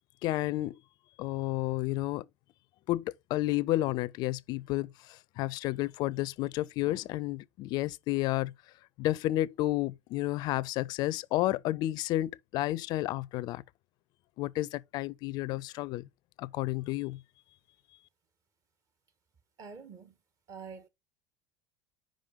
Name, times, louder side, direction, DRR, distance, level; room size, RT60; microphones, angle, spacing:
voice 1, 0.2-0.8 1.2-2.3 2.9-8.5 9.0-13.6 14.4-16.1 16.4-17.2, left 16 dB, 55° left, 0.4 m, -31 dB
voice 2, 19.6-20.1 20.5-20.9, right 5 dB, 40° right, 1.7 m, -46 dB
5.1 x 5.0 x 3.6 m
hypercardioid pair, 85°, 9 cm